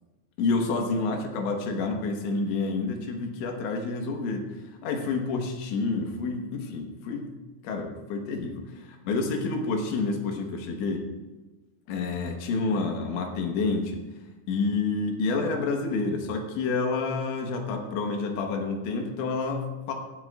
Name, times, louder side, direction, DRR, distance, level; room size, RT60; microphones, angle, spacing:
voice 1, 0.4-4.6 4.8-7.3 7.6-11.1 11.9-14.0 14.5-19.9, left 3 dB, 80° left, 3 dB, 3.7 m, -29 dB
18.0 x 13.0 x 2.5 m, 1.2 s
omnidirectional pair, 5.2 m